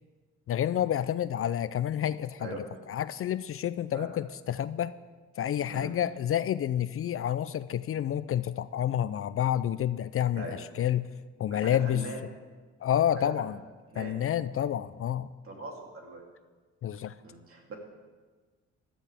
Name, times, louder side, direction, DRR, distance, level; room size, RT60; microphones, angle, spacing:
voice 1, 0.5-2.6 2.9-4.9 5.4-10.5 10.8-11.1 11.4-12.0 12.8-13.6 14.0-15.3 16.8-17.1, left 10 dB, 50° left, 15 dB, 0.4 m, -29 dB
voice 2, 11.5-12.2 13.2-13.5 13.9-14.2 15.4-16.2 17.2-17.7, right 2 dB, 45° right, 0 dB, 3.1 m, -41 dB
17.0 x 12.5 x 3.5 m, 1.4 s
cardioid pair, 90°, 30 cm